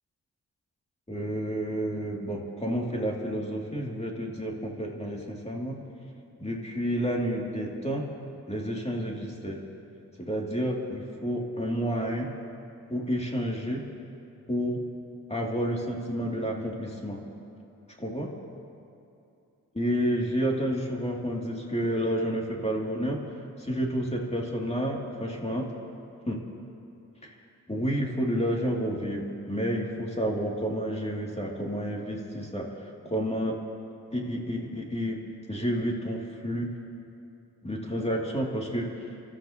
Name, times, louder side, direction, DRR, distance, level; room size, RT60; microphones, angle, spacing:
voice 1, 1.1-5.8 6.4-8.1 8.5-9.6 10.2-12.3 12.9-13.8 14.5-14.8 15.3-17.2 18.0-18.3 19.8-23.2 23.6-25.7 26.3-26.4 27.2-27.3 27.7-32.7 33.0-33.6 34.1-35.2 35.5-36.7 37.6-38.9, equal, 15° left, -2 dB, 2.7 m, -30 dB
27.5 x 14.0 x 3.0 m, 2.7 s
supercardioid pair, 50°, 36 cm